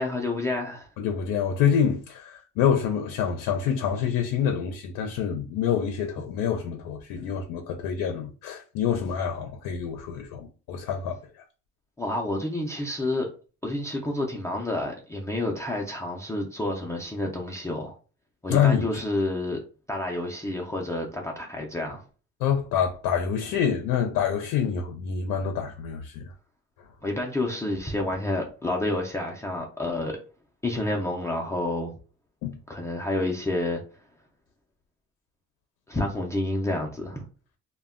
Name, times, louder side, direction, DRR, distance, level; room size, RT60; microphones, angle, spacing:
voice 1, 0.0-0.9 12.0-13.3 13.6-17.9 18.4-19.6 19.9-22.0 27.0-30.2 30.6-31.9 32.7-33.8 35.9-37.2, left 1 dB, 10° left, 0.3 m, -29 dB
voice 2, 1.0-11.2 18.5-18.8 22.4-26.3 32.4-32.6, left 8 dB, 85° left, 0.5 m, -26 dB
2.1 x 2.1 x 3.5 m
cardioid pair, 145°, 32 cm